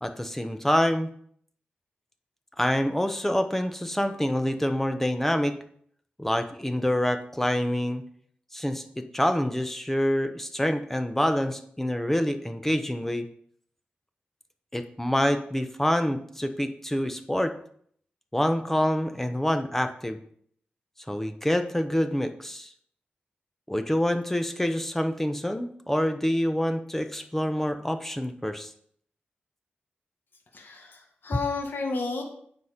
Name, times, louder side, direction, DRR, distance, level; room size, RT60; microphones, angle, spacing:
voice 1, 0.0-1.1 2.6-5.6 6.2-8.0 8.5-13.3 14.7-17.5 18.3-20.2 21.1-22.7 23.7-28.7, equal, 10° left, 8 dB, 0.8 m, -26 dB
voice 2, 30.5-32.2, left 3 dB, 65° left, 2 dB, 1.6 m, -31 dB
9.1 x 4.3 x 5.1 m, 0.63 s
wide cardioid pair, 80°, 4 cm